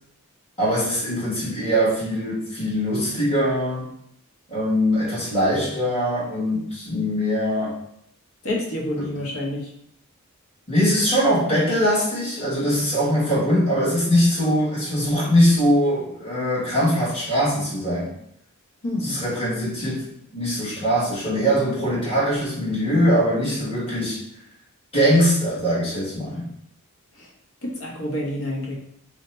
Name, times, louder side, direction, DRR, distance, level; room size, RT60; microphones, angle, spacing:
voice 1, 0.6-3.9 4.5-7.8 9.0-9.1 10.7-18.1 19.0-20.1 20.3-24.2 24.9-26.5, equal, 25° left, -8 dB, 1.3 m, -22 dB
voice 2, 8.4-9.7 18.8-19.2 27.2-27.3 27.6-28.7, left 1 dB, 65° left, -2 dB, 0.8 m, -28 dB
2.7 x 2.1 x 4.1 m, 0.70 s
head